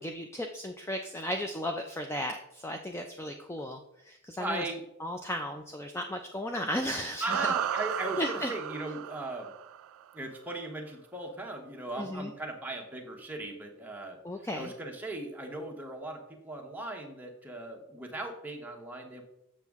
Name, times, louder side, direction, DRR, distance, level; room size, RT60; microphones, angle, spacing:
voice 1, 0.0-3.8 4.0-4.6 5.0-7.5 8.2-8.5 11.9-12.3 14.2-14.7, left 1 dB, 10° left, 4 dB, 0.3 m, -35 dB
voice 2, 4.4-4.8 7.2-9.5 10.1-14.2 14.5-19.2, right 2 dB, 10° right, 1 dB, 1.0 m, -38 dB
sound 1, 7.3-10.0, right 10 dB, 75° right, 0.3 m, -34 dB
7.5 x 6.3 x 3.5 m, 0.84 s
head